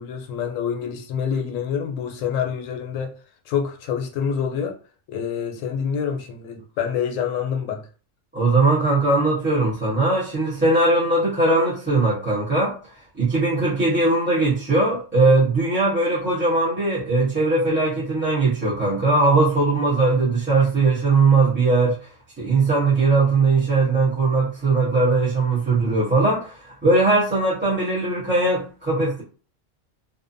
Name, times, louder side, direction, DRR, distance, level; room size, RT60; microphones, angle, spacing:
voice 1, 0.0-3.1 3.5-4.8 5.1-7.9, left 7 dB, 85° left, 1.0 m, -26 dB
voice 2, 8.3-12.7 13.2-22.0 22.4-29.2, right 3 dB, 10° right, 0.8 m, -20 dB
2.6 x 2.1 x 2.5 m
omnidirectional pair, 1.3 m